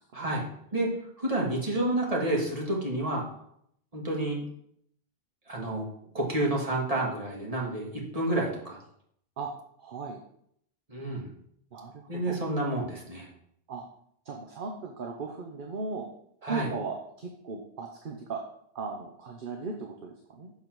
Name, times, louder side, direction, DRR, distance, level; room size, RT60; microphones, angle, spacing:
voice 1, 0.1-0.4 0.7-0.9 1.2-3.2 3.9-4.4 5.5-5.9 6.1-8.8 10.9-11.3 12.1-13.3 16.4-16.7, right 1 dB, 35° right, -2 dB, 2.1 m, -29 dB
voice 2, 9.8-10.2 11.7-12.4 13.7-13.8 14.2-16.1 16.4-18.4 18.7-20.5, right 4 dB, 55° right, 2 dB, 1.0 m, -37 dB
7.0 x 4.7 x 6.0 m, 0.70 s
omnidirectional pair, 1.1 m